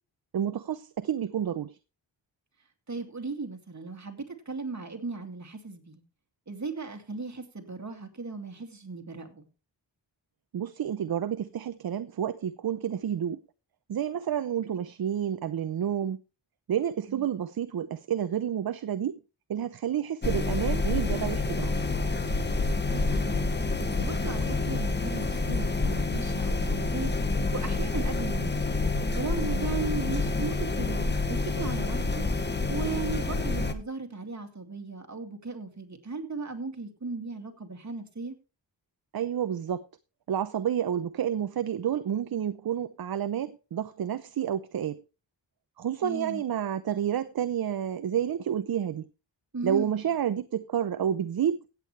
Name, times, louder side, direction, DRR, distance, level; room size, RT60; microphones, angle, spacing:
voice 1, 0.3-1.8 10.5-13.4 13.9-16.2 16.7-19.1 19.5-21.7 39.1-39.8 40.3-45.0 45.8-49.1 49.6-51.6, right 9 dB, 55° right, 0.6 m, -30 dB
voice 2, 2.9-6.0 6.5-9.5 17.1-17.3 22.7-23.4 24.0-27.1 27.5-28.6 29.2-32.2 32.7-38.4 46.0-46.4 49.5-49.9, right 4 dB, 40° right, 2.4 m, -36 dB
sound 1, 20.2-33.7, left 3 dB, 25° left, 1.2 m, -28 dB
16.0 x 8.4 x 3.2 m
wide cardioid pair, 90°, 45 cm